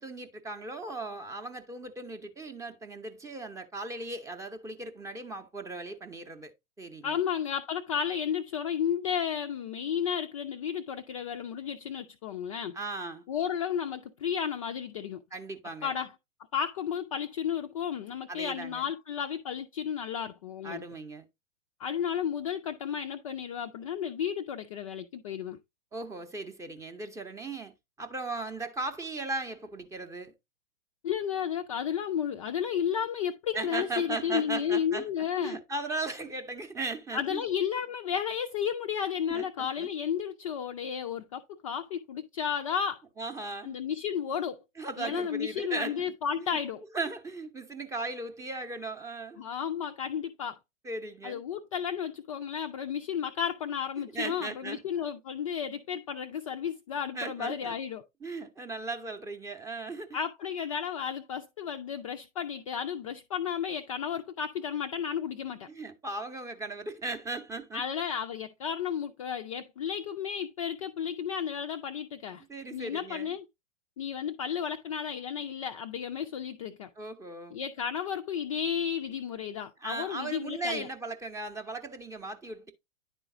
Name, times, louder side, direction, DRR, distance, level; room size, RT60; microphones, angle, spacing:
voice 1, 0.0-6.5 6.8-7.2 12.7-13.2 15.3-15.9 18.3-18.9 20.6-21.2 25.9-27.7 28.0-30.3 33.5-35.1 35.4-37.4 39.3-39.9 43.2-43.8 44.8-46.6 46.9-49.4 50.8-51.4 54.1-55.1 57.1-57.8 58.2-60.2 65.7-67.8 72.5-73.4 77.0-77.6 79.8-82.7, right 3 dB, 10° right, 0.6 m, -37 dB
voice 2, 7.0-12.8 13.3-15.2 15.8-16.1 16.5-20.8 21.8-25.6 31.0-35.6 37.1-43.0 43.6-44.6 45.0-46.8 49.4-50.6 51.2-58.0 60.1-65.7 67.7-72.4 72.7-73.4 74.0-76.9 77.5-80.9, left 8 dB, 30° left, 0.3 m, -33 dB
10.0 x 3.8 x 3.7 m
figure-of-eight pair, 110°, 38 cm